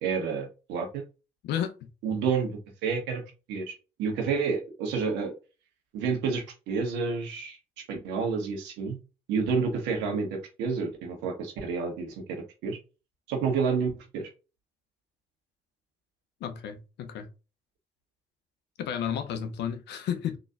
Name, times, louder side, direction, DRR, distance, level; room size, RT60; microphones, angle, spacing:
voice 1, 0.0-1.0 2.0-2.5 2.8-3.2 3.5-5.3 5.9-7.6 7.9-9.0 9.3-12.8 13.3-14.3, right 5 dB, 75° right, 1.1 m, -29 dB
voice 2, 1.4-1.8 16.4-17.3 18.8-20.4, left 9 dB, 70° left, 0.7 m, -32 dB
3.9 x 3.0 x 2.4 m
hypercardioid pair, 45°, 18 cm